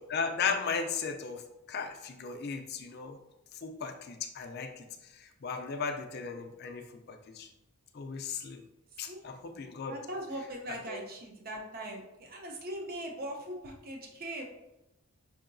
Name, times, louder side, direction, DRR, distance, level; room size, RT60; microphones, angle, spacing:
voice 1, 0.0-1.4 1.7-3.2 3.6-4.9 5.4-7.5 7.9-8.6 9.0-10.0 10.9-11.0, left 5 dB, 45° left, 5 dB, 0.4 m, -36 dB
voice 2, 9.9-14.4, right 1 dB, 40° right, 1 dB, 0.6 m, -40 dB
5.3 x 2.8 x 2.6 m, 0.94 s
head